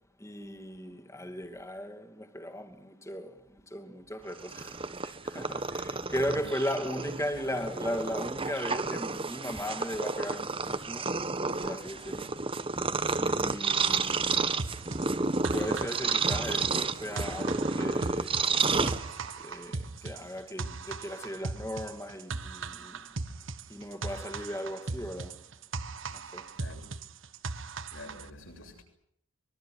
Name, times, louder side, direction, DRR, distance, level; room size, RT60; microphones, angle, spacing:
voice 1, 0.2-11.1 11.6-12.3 13.2-14.2 15.5-18.5 19.4-23.1 23.7-25.4 26.1-26.5, equal, 15° left, 2.5 m, -37 dB
Purr, 4.3-19.5, right 4 dB, 25° right, 1.2 m, -31 dB
voice 2, 5.7-6.5 12.1-12.2 13.3-13.6 26.6-26.9 27.9-28.8, left 1 dB, 60° left, 7.5 m, -48 dB
sound 1, 14.6-28.3, right 3 dB, 60° right, 1.4 m, -39 dB
24.0 x 23.0 x 9.4 m
head